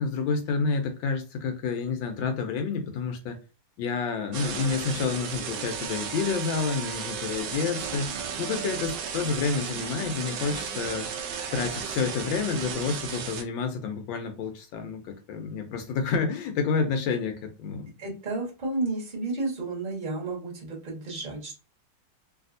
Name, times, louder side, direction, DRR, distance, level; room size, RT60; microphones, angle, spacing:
voice 1, 0.0-3.4 3.8-8.1 8.4-11.1 11.5-17.9, left 5 dB, 75° left, 1.2 m, -29 dB
sound 1, 4.3-13.4, right 6 dB, 75° right, 1.0 m, -34 dB
voice 2, 18.0-21.6, right 2 dB, 25° right, 1.1 m, -32 dB
3.3 x 2.7 x 2.5 m
omnidirectional pair, 2.4 m